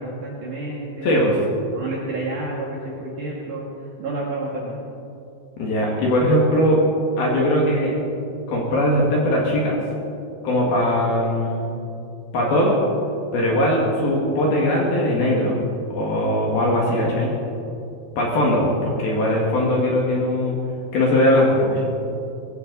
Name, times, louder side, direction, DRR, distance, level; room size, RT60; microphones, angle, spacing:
voice 1, 0.0-1.3 1.7-4.8, right 2 dB, 55° right, -4 dB, 2.6 m, -30 dB
voice 2, 1.0-1.4 5.6-6.8 7.2-7.9 8.5-9.8 10.4-11.7 12.3-12.8 13.3-15.6 16.0-17.3 18.2-20.6 20.9-21.9, left 1 dB, 60° left, -3 dB, 3.5 m, -20 dB
21.0 x 16.0 x 4.0 m, 2.7 s
omnidirectional pair, 5.3 m